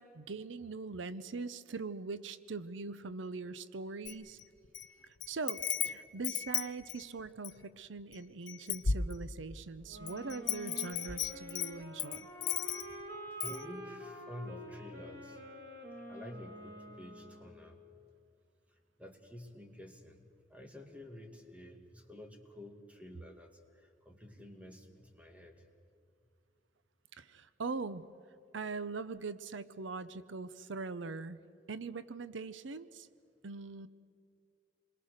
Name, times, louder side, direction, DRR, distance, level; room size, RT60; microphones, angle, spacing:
voice 1, 0.0-4.4 5.0-12.3 27.1-28.0 28.5-31.4 31.7-33.1 33.4-33.9, right 4 dB, 90° right, 14 dB, 0.7 m, -42 dB
Wind chime, 4.0-4.9 5.2-7.6 8.1-8.2 8.5-9.6 10.1-13.0 13.4-13.6, left 8 dB, 80° left, 0.8 m, -35 dB
sound 1, 9.8-17.7, equal, 60° right, 4.4 m, -47 dB
voice 2, 13.4-15.4 16.1-17.9 18.7-25.6, left 1 dB, 5° right, 4 dB, 2.2 m, -50 dB
28.0 x 22.5 x 6.6 m, 2.4 s
head